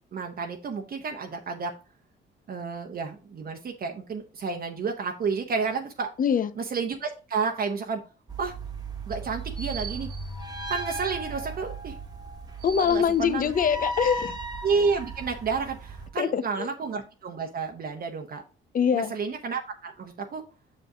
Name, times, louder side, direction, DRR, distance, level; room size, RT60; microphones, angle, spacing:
voice 1, 0.1-1.7 2.5-6.1 6.6-8.0 8.4-8.5 9.1-10.1 10.7-12.0 12.8-13.5 14.6-18.4 18.9-20.4, right 5 dB, 50° right, 0.9 m, -30 dB
voice 2, 6.2-6.5 12.6-14.4 16.2-16.7 18.7-19.1, left 7 dB, 45° left, 0.7 m, -24 dB
sound 1, 8.3-16.1, right 2 dB, 20° right, 1.4 m, -36 dB
6.3 x 5.3 x 3.7 m
cardioid pair, 90°, 20 cm